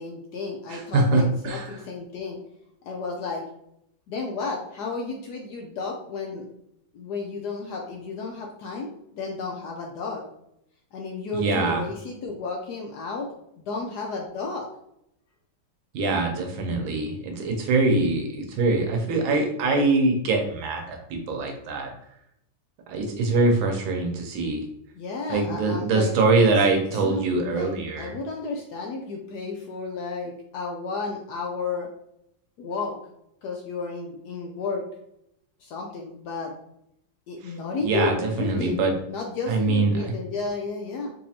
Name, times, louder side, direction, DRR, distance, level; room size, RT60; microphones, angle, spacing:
voice 1, 0.0-2.4 2.8-3.4 4.1-6.4 6.9-10.2 10.9-13.3 13.6-14.7 24.9-26.1 26.5-27.2 27.5-31.9 32.6-32.9 33.4-34.8 35.6-36.5 37.3-41.1, left 4 dB, 75° left, 0 dB, 1.0 m, -32 dB
voice 2, 0.7-1.6 11.3-11.8 15.9-21.9 22.9-24.6 25.3-28.1 37.8-38.9 39.5-40.1, right 3 dB, 80° right, 3 dB, 1.5 m, -23 dB
4.1 x 2.6 x 2.8 m, 0.76 s
omnidirectional pair, 2.1 m